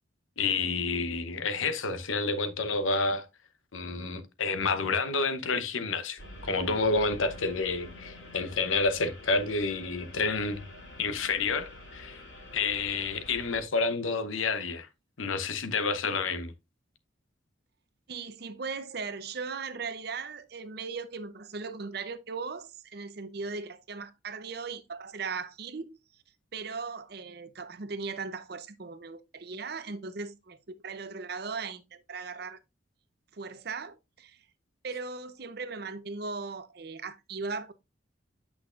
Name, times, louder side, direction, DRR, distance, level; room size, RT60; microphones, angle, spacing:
voice 1, 0.4-3.2 3.7-10.6 11.0-12.2 12.5-14.9 15.2-16.5, left 4 dB, 90° left, 0.9 m, -29 dB
sound 1, 6.2-13.6, left 1 dB, 70° left, 3.3 m, -47 dB
voice 2, 18.1-26.0 26.5-32.6 33.3-34.4 34.8-37.7, right 4 dB, 55° right, 0.6 m, -38 dB
8.3 x 6.1 x 2.5 m
head